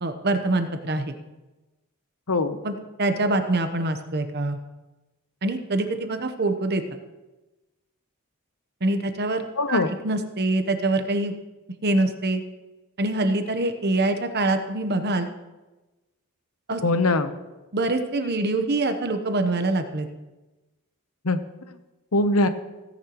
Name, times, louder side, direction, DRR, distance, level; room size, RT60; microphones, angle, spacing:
voice 1, 0.0-1.1 2.6-4.6 5.4-6.8 8.8-11.3 11.8-12.4 13.0-15.3 16.7-16.8 17.7-20.1, right 2 dB, 45° right, 7 dB, 1.0 m, -25 dB
voice 2, 2.3-2.6 9.6-9.9 16.8-17.3 21.2-21.4 22.1-22.5, left 2 dB, 70° left, 10 dB, 0.9 m, -21 dB
17.0 x 10.0 x 3.1 m, 1.1 s
head